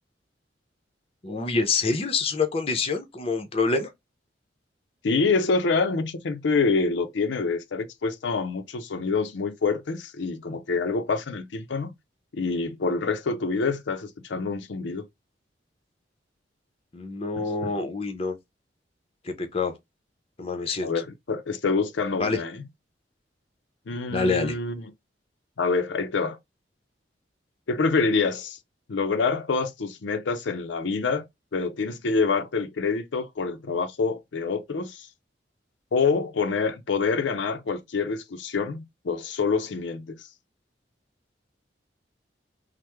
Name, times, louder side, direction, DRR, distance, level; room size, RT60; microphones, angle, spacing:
voice 1, 1.2-3.9 16.9-18.4 19.2-19.7 20.4-20.9 22.2-22.4 24.1-24.6, left 4 dB, 30° left, 0.6 m, -26 dB
voice 2, 5.0-11.9 12.3-15.1 17.4-17.7 20.8-22.6 23.9-24.9 25.6-26.4 27.7-28.6 28.9-31.3 31.5-35.1 35.9-40.3, left 4 dB, 80° left, 0.5 m, -26 dB
3.3 x 2.0 x 2.9 m
head